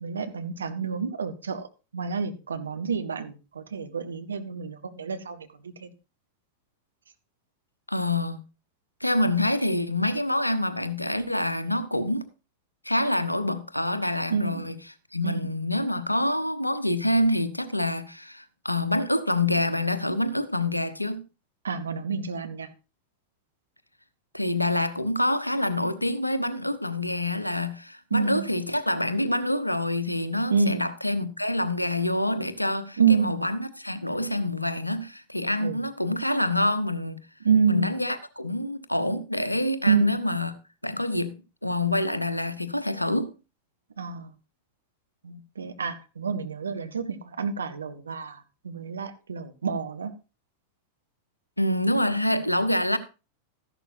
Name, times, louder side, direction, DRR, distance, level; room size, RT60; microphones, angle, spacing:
voice 1, 0.0-1.7 1.9-5.9 14.3-14.6 15.2-15.5 21.6-22.7 28.1-28.4 30.5-30.8 33.0-33.3 35.6-35.8 37.4-37.9 39.9-40.2 44.0-44.3 45.2-50.1, right 5 dB, 70° right, 1.1 m, -28 dB
voice 2, 7.9-8.4 9.0-12.3 12.8-14.8 15.1-21.2 24.3-37.2 37.7-40.5 40.8-41.3 41.6-43.3 51.6-53.0, left 1 dB, 85° left, 0.9 m, -26 dB
13.5 x 11.0 x 2.7 m
figure-of-eight pair, 90°, 0 cm